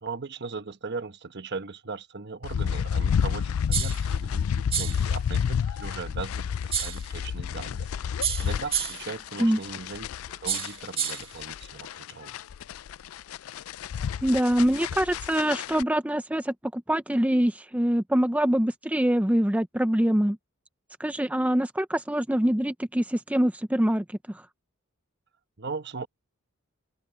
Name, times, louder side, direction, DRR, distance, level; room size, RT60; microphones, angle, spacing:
voice 1, 0.0-7.9 8.4-12.4 25.6-26.1, right 4 dB, 55° right, 1.1 m, -38 dB
sound 1, 2.4-15.8, left 7 dB, 75° left, 0.4 m, -30 dB
sound 2, 3.7-4.1 4.7-5.1 6.7-7.1 8.2-9.1 10.5-11.3, right 8 dB, 25° right, 1.9 m, -29 dB
voice 2, 14.2-20.4 21.0-24.4, equal, 5° right, 0.5 m, -24 dB
head